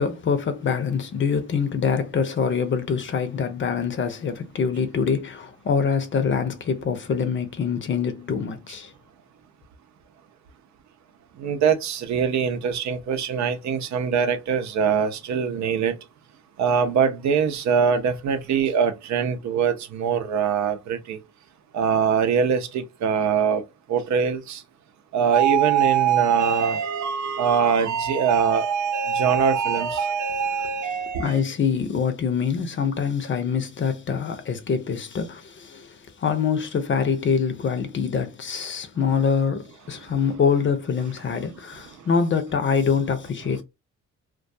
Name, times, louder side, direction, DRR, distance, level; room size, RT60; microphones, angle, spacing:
voice 1, 0.0-8.9 31.2-43.6, left 6 dB, 40° left, 0.6 m, -25 dB
voice 2, 11.3-16.0 16.6-21.2 21.7-24.6 25.1-31.4 40.0-40.1 41.9-42.1, right 7 dB, 70° right, 0.6 m, -23 dB
2.2 x 2.2 x 2.6 m
cardioid pair, 90°, 30 cm